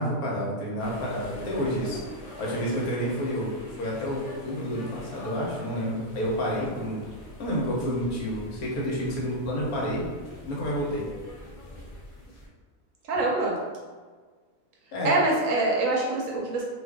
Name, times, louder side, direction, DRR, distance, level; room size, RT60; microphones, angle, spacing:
voice 1, 0.0-2.0 2.4-3.5 3.8-7.0 7.4-10.1 10.5-11.1 14.9-15.1, equal, 80° left, -4 dB, 1.3 m, -29 dB
sound 1, 0.8-12.5, left 1 dB, 60° left, 0.4 m, -44 dB
voice 2, 13.1-13.6 15.0-16.6, right 2 dB, 70° right, -2 dB, 0.9 m, -24 dB
2.7 x 2.4 x 3.5 m, 1.5 s
omnidirectional pair, 1.6 m